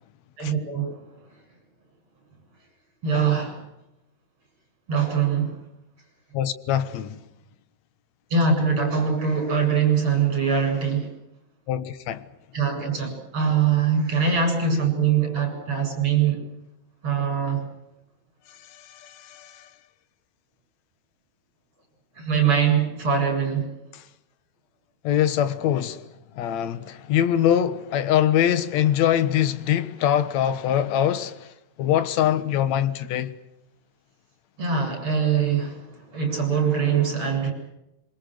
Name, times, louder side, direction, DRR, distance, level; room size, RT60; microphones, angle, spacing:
voice 1, 0.4-1.0 3.0-3.6 4.9-5.6 8.3-11.1 12.5-16.5 17.0-17.6 22.2-23.7 34.6-35.8 36.1-37.5, right 6 dB, 30° right, 8.5 m, -22 dB
voice 2, 6.3-7.2 11.7-12.2 18.9-19.7 25.0-26.0 26.4-31.4 31.8-33.3, left 10 dB, 60° left, 2.0 m, -23 dB
27.5 x 25.5 x 6.4 m
omnidirectional pair, 4.7 m